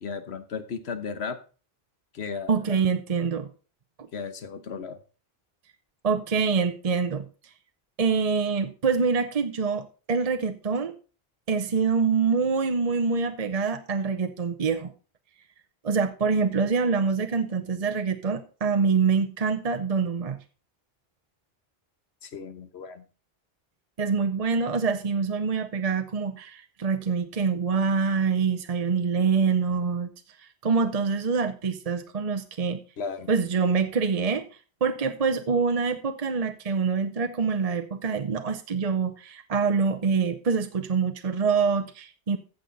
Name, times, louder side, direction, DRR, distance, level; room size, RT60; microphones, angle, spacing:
voice 1, 0.0-1.4 2.1-2.6 4.1-5.0 22.2-23.0 33.0-33.3, left 5 dB, 80° left, 11 dB, 1.3 m, -35 dB
voice 2, 2.5-3.5 6.0-7.3 8.0-10.9 11.5-14.9 15.8-20.4 24.0-30.1 30.6-32.8 33.3-34.4 34.8-42.4, right 5 dB, 40° right, 8 dB, 0.8 m, -25 dB
14.5 x 6.5 x 4.0 m, 0.36 s
omnidirectional pair, 1.1 m